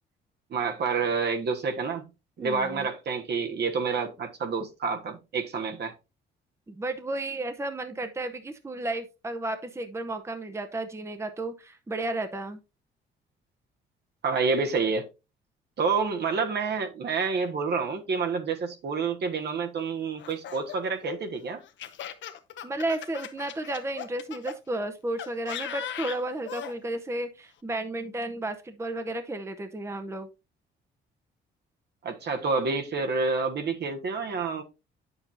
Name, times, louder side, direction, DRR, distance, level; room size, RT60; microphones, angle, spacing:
voice 1, 0.5-2.0 2.4-5.9 14.2-15.1 15.8-21.6 32.0-34.6, right 4 dB, 60° right, 1.3 m, -28 dB
voice 2, 2.4-2.9 6.7-12.6 22.6-30.3, right 2 dB, 15° right, 0.7 m, -33 dB
Laughter, 20.2-24.6 25.2-26.7, left 10 dB, 70° left, 0.9 m, -38 dB
8.6 x 7.0 x 2.6 m
cardioid pair, 90°, 20 cm